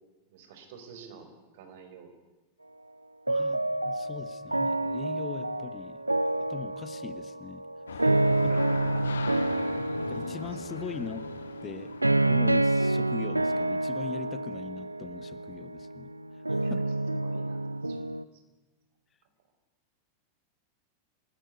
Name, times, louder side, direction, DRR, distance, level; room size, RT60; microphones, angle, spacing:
voice 1, 0.3-2.1 8.0-9.1 16.6-16.7 17.2-18.1 18.3-18.4, right 6 dB, 55° right, 7 dB, 4.8 m, -49 dB
voice 2, 3.3-3.6 3.8-6.0 6.5-7.6 7.9-8.0 8.4-8.5 10.1-11.2 11.6-12.0 12.2-16.1 16.5-16.8, left 7 dB, 25° left, 13 dB, 1.3 m, -40 dB
sound 1, 3.3-18.2, right 2 dB, 85° right, 0.8 m, -29 dB
sound 2, 7.9-13.0, left 6 dB, 70° left, 1.6 m, -41 dB
26.5 x 20.0 x 9.6 m, 1.2 s
figure-of-eight pair, 90°, 0 cm